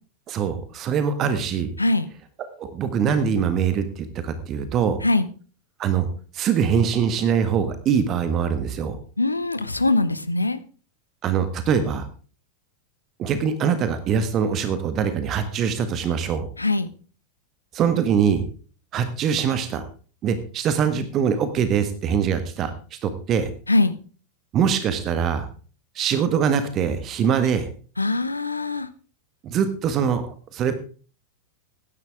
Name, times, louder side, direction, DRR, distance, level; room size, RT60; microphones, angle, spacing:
voice 1, 0.3-1.7 2.6-5.0 5.8-6.1 6.3-9.0 11.2-12.1 13.2-16.5 17.7-18.4 18.9-19.8 20.2-23.5 24.5-25.5 25.9-27.7 29.4-30.3 30.5-30.7, right 7 dB, 30° right, 11 dB, 1.5 m, -23 dB
voice 2, 1.8-2.1 5.0-5.3 9.2-10.6 16.6-16.9 23.7-23.9 28.0-28.9, left 2 dB, 80° left, 14 dB, 0.9 m, -22 dB
15.0 x 11.0 x 3.5 m, 0.38 s
figure-of-eight pair, 90°, 0 cm